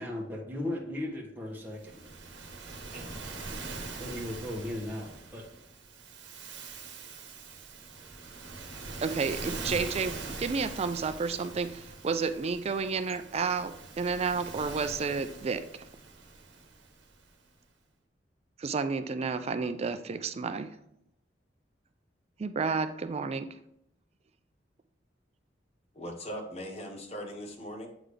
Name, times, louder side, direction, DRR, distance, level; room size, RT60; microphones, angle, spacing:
voice 1, 0.0-2.1 2.9-3.4 4.0-5.5, left 1 dB, 10° right, -3 dB, 1.3 m, -37 dB
Waves surf, 1.7-17.2, right 3 dB, 70° right, 1.1 m, -43 dB
voice 2, 9.0-15.9 18.6-20.8 22.4-23.6, right 5 dB, 35° right, 10 dB, 0.4 m, -31 dB
voice 3, 25.9-27.9, equal, 35° left, 3 dB, 1.1 m, -39 dB
8.0 x 3.9 x 3.3 m, 0.76 s
head